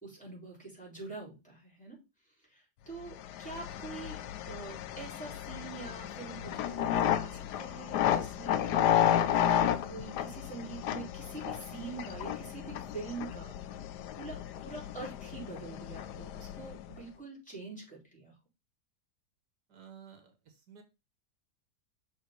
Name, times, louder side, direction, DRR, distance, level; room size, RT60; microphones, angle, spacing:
voice 1, 0.0-2.0 2.3-4.2 4.5-8.7 9.5-18.3, right 4 dB, 5° left, -3 dB, 3.8 m, -45 dB
sound 1, 3.1-17.0, left 10 dB, 80° left, 1.2 m, -32 dB
voice 2, 19.7-20.8, right 8 dB, 80° right, 6 dB, 1.9 m, -53 dB
6.3 x 3.8 x 5.0 m, 0.26 s
omnidirectional pair, 1.8 m